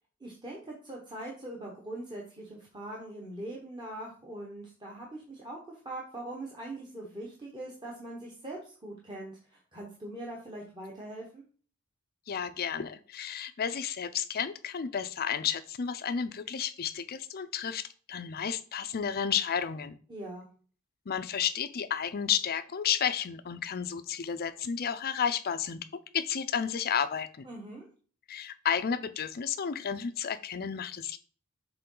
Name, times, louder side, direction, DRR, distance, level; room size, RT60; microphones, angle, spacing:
voice 1, 0.2-5.6 5.8-11.4 20.1-20.5 27.4-27.9, right 1 dB, 20° right, -3 dB, 1.1 m, -42 dB
voice 2, 12.3-17.8 18.1-19.9 21.1-25.8 26.1-27.5 28.3-31.2, left 7 dB, 45° left, 11 dB, 0.5 m, -32 dB
6.8 x 3.8 x 3.8 m, 0.41 s
head